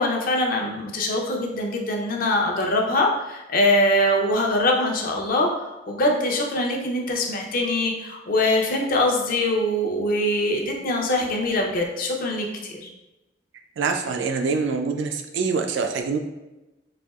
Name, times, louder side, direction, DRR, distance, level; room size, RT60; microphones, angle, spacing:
voice 1, 0.0-12.9, left 1 dB, 55° left, 1 dB, 0.6 m, -23 dB
voice 2, 13.8-16.2, right 5 dB, 85° right, 4 dB, 0.3 m, -25 dB
4.2 x 2.7 x 2.3 m, 1.0 s
head